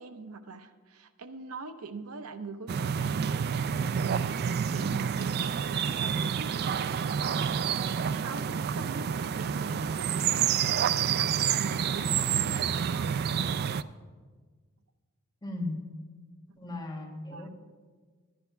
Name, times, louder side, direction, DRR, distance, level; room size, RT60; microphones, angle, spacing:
voice 1, 0.0-7.8 8.1-10.9 11.2-13.1 16.5-16.6 17.3-17.5, right 4 dB, 80° right, 10 dB, 0.7 m, -43 dB
sound 1, 2.7-13.8, right 7 dB, 45° right, 0.3 m, -28 dB
voice 2, 15.4-15.9 16.5-17.5, left 2 dB, 20° left, 0 dB, 1.6 m, -36 dB
11.0 x 10.5 x 5.8 m, 1.5 s
head